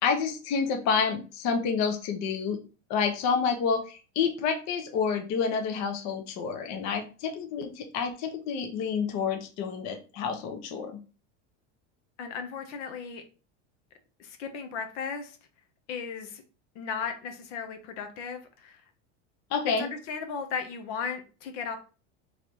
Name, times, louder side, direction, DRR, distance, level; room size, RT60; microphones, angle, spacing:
voice 1, 0.0-2.6 2.9-10.9 19.5-19.9, left 6 dB, 50° left, 5 dB, 0.8 m, -29 dB
voice 2, 12.2-13.2 14.2-15.4 15.9-16.4 16.7-18.8 19.8-21.8, left 6 dB, 75° left, 7 dB, 0.9 m, -36 dB
3.2 x 3.2 x 3.9 m, 0.35 s
supercardioid pair, 125°, 36 cm